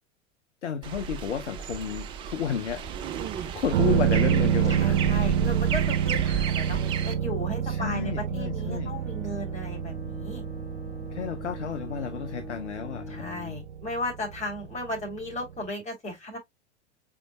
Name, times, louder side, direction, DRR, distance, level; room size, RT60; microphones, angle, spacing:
voice 1, 0.6-2.8 3.4-5.1 7.6-8.9 11.1-13.2, left 7 dB, 75° left, 0.7 m, -32 dB
sound 1, 0.8-7.1, right 7 dB, 15° right, 0.3 m, -34 dB
sound 2, 3.7-15.3 15.6-15.7, right 9 dB, 65° right, 0.6 m, -28 dB
voice 2, 4.7-6.8 7.0-10.4 13.1-16.4, left 1 dB, 20° left, 3.1 m, -35 dB
Bowed string instrument, 8.8-13.7, left 5 dB, 35° left, 2.5 m, -44 dB
5.1 x 4.6 x 2.2 m
figure-of-eight pair, 90°, 35 cm